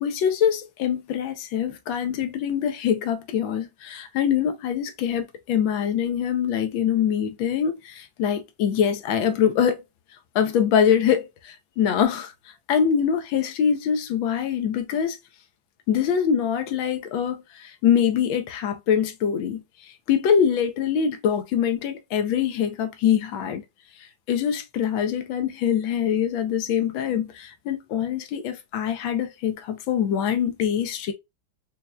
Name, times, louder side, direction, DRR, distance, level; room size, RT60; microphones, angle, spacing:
voice 1, 0.0-9.8 10.3-12.3 12.7-15.2 15.9-23.6 24.0-31.1, left 8 dB, 85° left, 1.5 m, -24 dB
5.5 x 2.2 x 2.3 m
omnidirectional pair, 2.1 m